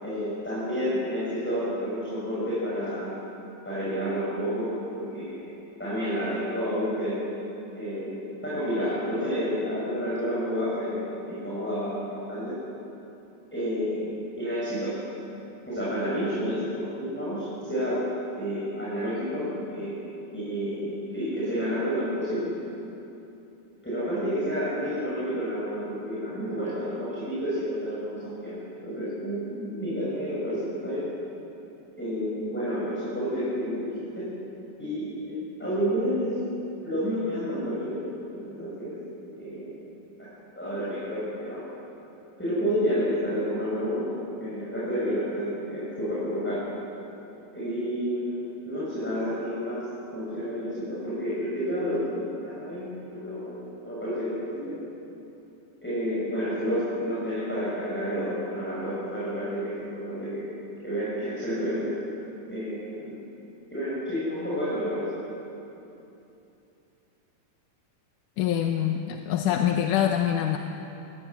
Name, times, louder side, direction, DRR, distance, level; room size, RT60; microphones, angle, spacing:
voice 1, 0.0-3.1 3.6-5.4 5.8-7.2 7.7-12.5 13.5-14.9 15.7-18.0 18.3-20.0 20.3-22.5 23.8-31.1 32.0-34.3 34.8-36.4 36.8-38.9 39.4-39.7 40.2-40.3 40.6-41.6 42.4-44.1 44.4-46.7 47.5-49.8 50.1-53.5 53.8-54.8 55.8-60.4 60.8-61.9 62.5-63.1 63.7-65.1, equal, 5° left, -9 dB, 6.6 m, -30 dB
voice 2, 68.4-70.6, left 10 dB, 80° left, 4 dB, 2.5 m, -25 dB
24.0 x 18.0 x 9.5 m, 2.9 s
omnidirectional pair, 3.7 m